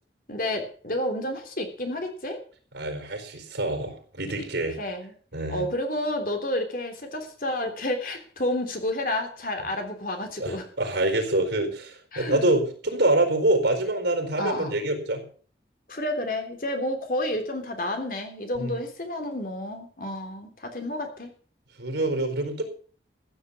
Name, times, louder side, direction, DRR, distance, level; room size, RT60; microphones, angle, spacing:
voice 1, 0.3-2.4 4.8-5.1 5.5-10.7 12.1-12.4 14.4-14.8 15.9-21.3, left 1 dB, 50° left, 5 dB, 3.3 m, -30 dB
voice 2, 2.7-4.8 5.3-5.6 10.4-15.2 18.6-18.7 21.8-22.6, right 2 dB, 85° right, 6 dB, 4.6 m, -26 dB
15.0 x 8.3 x 7.0 m, 0.43 s
head